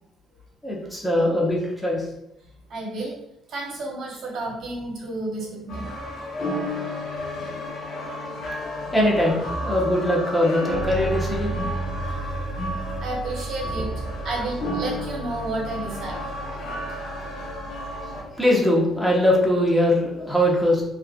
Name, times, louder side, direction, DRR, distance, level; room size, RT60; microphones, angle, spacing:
voice 1, 0.6-2.1 8.9-12.1 18.0-20.8, left 1 dB, 5° left, -4 dB, 0.9 m, -22 dB
voice 2, 2.7-3.2 3.5-5.9 13.0-13.9 14.2-16.2 17.5-17.6, right 2 dB, 65° right, -2 dB, 0.9 m, -31 dB
sound 1, 5.7-18.2, equal, 65° left, 0.9 m, -31 dB
3.0 x 2.5 x 2.4 m, 0.85 s
cardioid pair, 85°, 0 cm